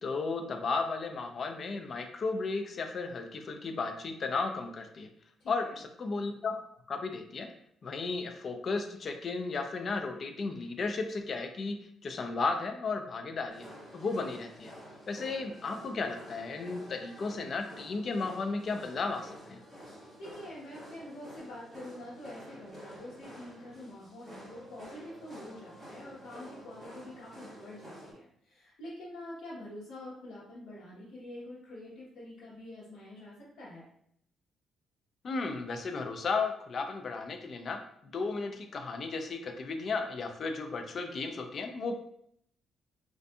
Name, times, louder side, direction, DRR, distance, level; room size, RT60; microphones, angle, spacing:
voice 1, 0.0-5.1 5.5-5.7 6.0-6.5 6.9-7.5 7.8-11.8 12.0-13.7 13.9-14.7 15.1-19.6 35.2-41.9, left 4 dB, 40° left, 6 dB, 0.3 m, -34 dB
voice 2, 5.4-5.8 20.2-33.9, left 1 dB, 75° left, -8 dB, 0.9 m, -46 dB
sound 1, 13.5-28.1, equal, 10° right, 1.2 m, -50 dB
2.6 x 2.5 x 2.2 m, 0.69 s
cardioid pair, 145°, 0 cm